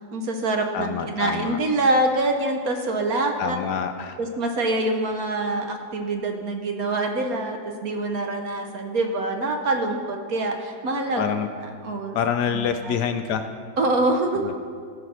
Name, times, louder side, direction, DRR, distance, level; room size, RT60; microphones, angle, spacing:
voice 1, 0.1-3.6 4.2-11.3 11.6-12.2 12.5-13.0 13.8-14.5, right 2 dB, 60° right, 4 dB, 1.2 m, -25 dB
voice 2, 0.7-1.6 3.4-4.2 11.2-11.5 12.1-13.5 14.4-14.5, left 7 dB, 70° left, 8 dB, 1.1 m, -26 dB
15.0 x 5.7 x 6.2 m, 2.1 s
omnidirectional pair, 2.0 m